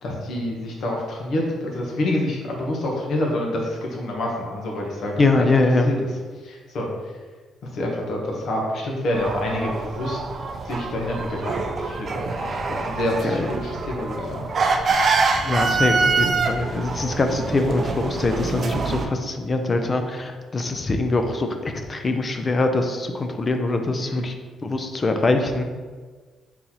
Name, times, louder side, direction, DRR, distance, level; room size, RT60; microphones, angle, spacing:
voice 1, 0.0-5.5 5.8-5.9 6.4-6.9 7.7-10.2 10.6-14.4 24.0-24.2, left 1 dB, 60° left, -1 dB, 1.0 m, -27 dB
voice 2, 5.2-5.9 13.2-13.5 15.4-24.3 24.6-25.6, left 2 dB, 25° left, 5 dB, 0.4 m, -23 dB
sound 1, 9.1-19.1, right 4 dB, 40° right, 0.4 m, -25 dB
4.0 x 3.9 x 2.9 m, 1.4 s
cardioid pair, 140°, 0 cm